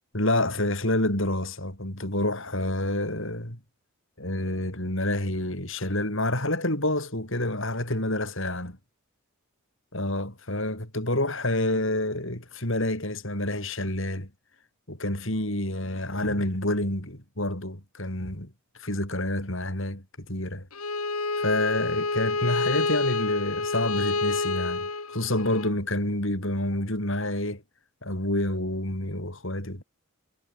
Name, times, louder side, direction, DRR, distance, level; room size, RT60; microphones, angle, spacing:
voice 1, 0.1-3.6 4.2-8.8 9.9-14.3 14.9-18.5 18.8-20.7 21.4-27.6 28.0-29.8, left 1 dB, 60° left, 6.2 m, -28 dB
Bowed string instrument, 20.7-25.7, left 3 dB, 85° left, 4.1 m, -28 dB
head